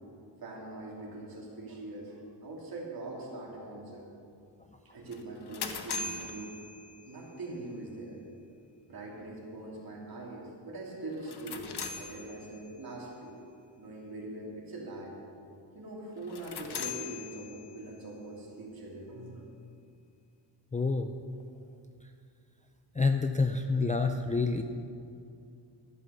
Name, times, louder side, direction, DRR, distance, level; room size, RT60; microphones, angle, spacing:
voice 1, 0.4-4.0 4.8-6.5 7.0-8.2 8.9-11.7 12.0-13.4 13.8-15.1 15.7-19.4, right 2 dB, 50° right, -3 dB, 3.0 m, -42 dB
sound 1, 5.1-7.4 11.1-12.8 16.2-18.0, left 5 dB, 60° left, 1.1 m, -40 dB
voice 2, 20.7-21.1 23.0-24.6, left 4 dB, 15° left, 5 dB, 0.4 m, -28 dB
12.5 x 9.7 x 7.0 m, 2.5 s
wide cardioid pair, 150°, 45 cm